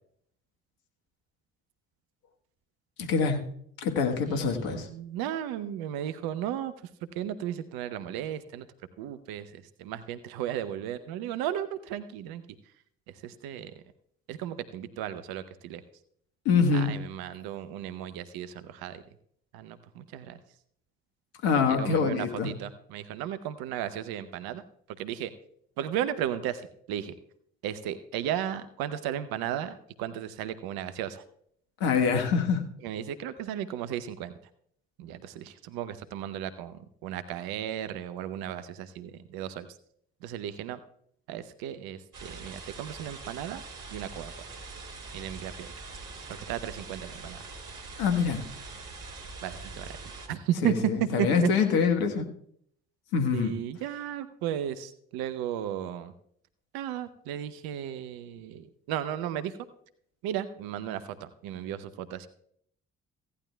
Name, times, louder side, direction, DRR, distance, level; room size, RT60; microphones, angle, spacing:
voice 1, 3.0-3.4 3.8-4.9 16.4-16.9 21.4-22.5 31.8-32.6 48.0-48.4 50.6-50.7 51.1-52.3 53.1-53.5, left 5 dB, 75° left, 4 dB, 1.4 m, -25 dB
voice 2, 4.2-8.7 9.0-12.4 13.1-13.7 14.3-15.8 16.7-19.0 19.5-20.4 21.8-24.6 25.0-25.3 25.8-27.1 27.6-31.2 32.8-34.3 35.0-39.8 40.2-40.8 41.3-43.6 43.9-44.3 45.1-45.7 46.5-47.4 49.4-50.0 50.3-50.7 51.2-51.3 53.3-56.1 56.7-59.6 60.2-62.3, right 11 dB, 70° right, 13 dB, 0.8 m, -35 dB
sound 1, 42.1-50.3, right 3 dB, 55° right, 2.9 m, -43 dB
16.5 x 11.5 x 2.3 m, 0.67 s
hypercardioid pair, 40°, 38 cm